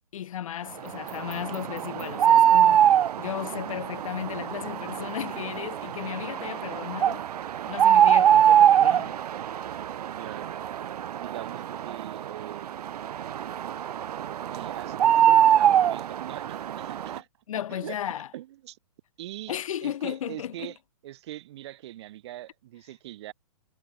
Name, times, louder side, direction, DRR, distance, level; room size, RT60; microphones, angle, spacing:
voice 1, 0.1-2.9 3.2-7.3 7.7-9.1 17.5-18.3 19.5-20.7, left 10 dB, 60° left, 1.1 m, -35 dB
sound 1, 0.9-17.2, right 10 dB, 80° right, 0.5 m, -23 dB
voice 2, 10.2-10.5 11.1-12.8 14.4-17.3 17.7-18.0 18.3-18.8 19.2-20.8 21.0-23.3, right 14 dB, 45° right, 3.7 m, -41 dB
hypercardioid pair, 155°, 20 cm